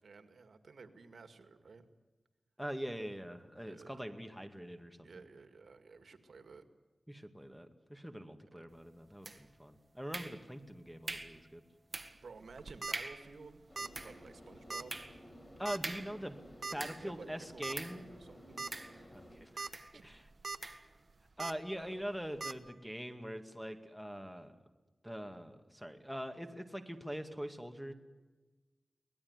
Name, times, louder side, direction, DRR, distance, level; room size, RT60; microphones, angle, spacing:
voice 1, 0.0-1.9 3.6-4.0 5.0-6.6 8.5-8.7 12.2-13.6 14.0-15.0 16.7-18.6 19.9-20.1 21.8-22.0, right 4 dB, 85° right, 8 dB, 2.0 m, -54 dB
voice 2, 2.6-5.1 7.1-11.6 15.6-16.4 16.7-18.1 19.1-19.7 20.0-20.2 21.4-24.5 25.0-27.9, equal, ahead, 6 dB, 2.2 m, -43 dB
sound 1, 9.2-9.7 10.1-10.7 11.1-11.4 11.9-12.3 12.6-12.7 12.9-13.3 13.8-17.2 17.7-18.1 18.7-19.3 19.7-20.0 20.6-20.9, right 2 dB, 30° right, 1.9 m, -44 dB
sound 2, 12.5-12.9 13.8-14.0 14.3-14.4 14.7-14.8 15.7-15.9 16.6-16.8 17.6-17.8 18.2-18.3 18.6-18.7 19.4-19.7 20.1-20.6 21.4-21.5 22.4-22.5, right 4 dB, 60° right, 1.2 m, -40 dB
sound 3, 13.7-19.4, equal, 35° left, 7.0 m, -55 dB
24.0 x 19.0 x 9.6 m, 1.2 s
wide cardioid pair, 90°, 0 cm